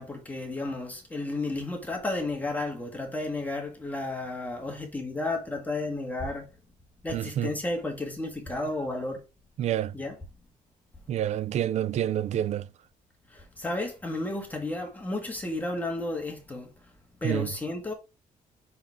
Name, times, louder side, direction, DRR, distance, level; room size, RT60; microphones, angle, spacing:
voice 1, 0.0-6.5 7.0-9.2 9.9-10.2 13.3-16.7 17.2-17.9, left 2 dB, 10° left, 1.9 m, -32 dB
voice 2, 7.1-7.5 9.6-9.9 11.1-12.7 17.2-17.5, right 11 dB, 50° right, 0.4 m, -28 dB
6.1 x 5.6 x 3.5 m
cardioid pair, 145°, 15 cm